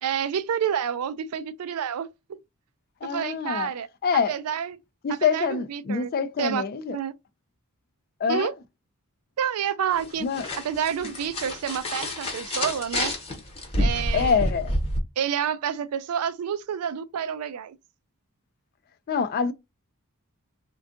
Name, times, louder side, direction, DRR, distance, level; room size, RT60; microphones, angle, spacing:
voice 1, 0.0-2.4 3.0-3.9 4.3-4.8 5.1-6.1 6.4-6.6 6.9-7.1 8.3-8.5 9.4-10.3 10.6-13.1 13.8-14.3 15.2-17.8, right 8 dB, 80° right, 0.4 m, -29 dB
voice 2, 3.0-3.7 4.0-4.4 5.0-7.0 8.2-8.5 10.2-10.5 14.1-14.7 19.1-19.5, left 6 dB, 45° left, 0.3 m, -25 dB
sound 1, 9.9-15.0, left 1 dB, 25° left, 0.9 m, -29 dB
3.5 x 2.2 x 2.5 m
head